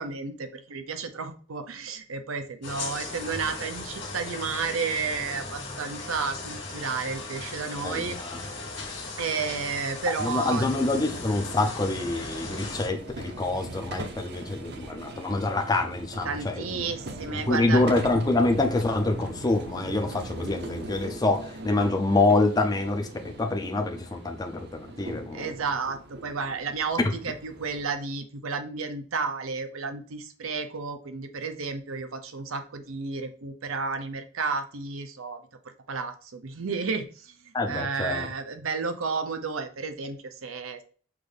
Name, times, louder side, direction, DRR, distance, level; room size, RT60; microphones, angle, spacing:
voice 1, 0.0-8.2 9.2-10.7 16.2-17.9 25.3-35.4 35.9-37.3 37.7-40.8, right 5 dB, 90° right, 8 dB, 0.6 m, -32 dB
sound 1, 2.6-12.9, left 3 dB, 55° left, 1.5 m, -38 dB
voice 2, 7.8-8.4 10.2-16.6 17.3-25.5 37.5-38.3, left 2 dB, 20° left, 4 dB, 0.5 m, -26 dB
sound 2, 10.4-28.0, right 2 dB, 50° right, 0.6 m, -41 dB
6.0 x 2.6 x 3.3 m, 0.41 s
head